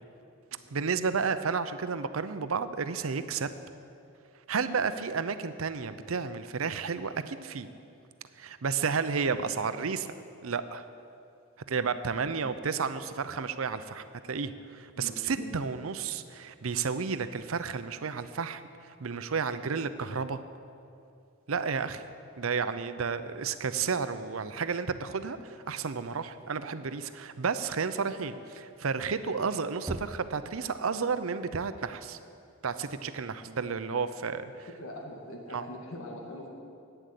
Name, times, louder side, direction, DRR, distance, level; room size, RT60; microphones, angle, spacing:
voice 1, 0.7-3.5 4.5-7.7 8.4-10.1 10.4-10.8 11.7-20.4 21.5-22.0 22.4-32.2 32.6-34.7 35.5-35.6, right 5 dB, 90° right, 12 dB, 0.7 m, -32 dB
voice 2, 14.9-15.6 19.5-19.7 34.5-36.5, left 1 dB, 90° left, 1 dB, 2.1 m, -43 dB
Knock, 29.9-30.8, right 1 dB, 20° right, 0.5 m, -40 dB
11.5 x 9.0 x 8.3 m, 2.5 s
head